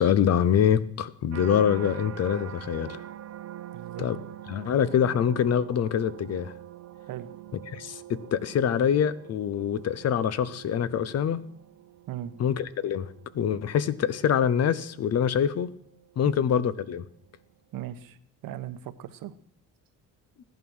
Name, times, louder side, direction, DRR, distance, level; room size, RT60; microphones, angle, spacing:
voice 1, 0.0-3.0 4.0-4.2 4.5-6.5 7.5-11.4 12.4-13.1 13.3-15.7 16.2-17.0, left 8 dB, 50° left, 17 dB, 0.8 m, -25 dB
sound 1, 1.3-16.5 17.0-17.5, right 12 dB, 45° right, 0.8 m, -44 dB
voice 2, 3.7-4.1 7.1-7.3 12.1-12.3 16.4-16.5 17.7-18.2 18.4-19.3, right 12 dB, 80° right, 12 dB, 1.1 m, -38 dB
15.5 x 10.5 x 6.3 m, 0.63 s
cardioid pair, 140°, 34 cm